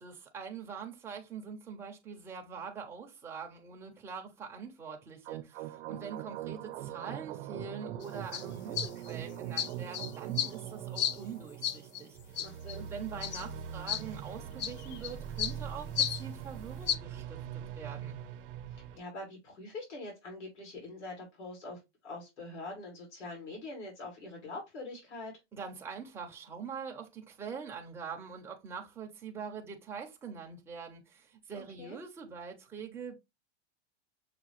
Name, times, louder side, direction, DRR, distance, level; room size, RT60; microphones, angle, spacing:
voice 1, 0.0-12.4 12.7-17.4 17.7-18.2 25.5-33.1, right 6 dB, 5° right, 0.5 m, -44 dB
sound 1, 5.2-19.0, right 10 dB, 50° right, 0.7 m, -42 dB
sound 2, 8.0-8.1 8.3-8.4 8.7-9.1 9.6-10.5 11.0-11.2 11.6-12.0 12.4-12.8 13.2-13.4 13.9-14.0 14.6-15.1 15.4-15.5 16.0-16.2 16.9-17.0, left 9 dB, 40° left, 0.4 m, -32 dB
voice 2, 12.4-12.9 18.7-25.3 31.8-32.0, left 2 dB, 85° left, 2.7 m, -44 dB
6.4 x 2.3 x 3.1 m
supercardioid pair, 160°, 34 cm